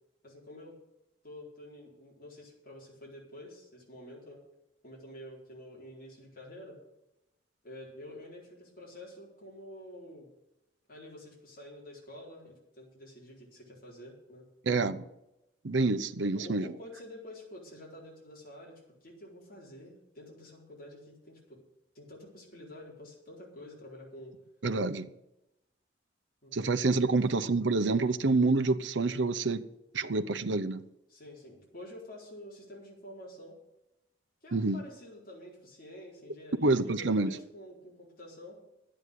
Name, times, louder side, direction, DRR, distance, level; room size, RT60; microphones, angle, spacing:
voice 1, 0.2-0.8 1.2-4.4 4.8-6.8 7.6-10.3 10.9-14.4 16.3-21.6 21.9-24.3 26.4-26.6 26.9-27.1 31.1-33.6 34.4-38.6, left 1 dB, 50° left, 4.3 m, -48 dB
voice 2, 14.7-15.0 15.6-16.7 24.6-25.1 26.5-29.6 29.9-30.8 34.5-34.8 36.6-37.3, right 3 dB, 75° right, 0.8 m, -27 dB
11.0 x 8.9 x 8.2 m
head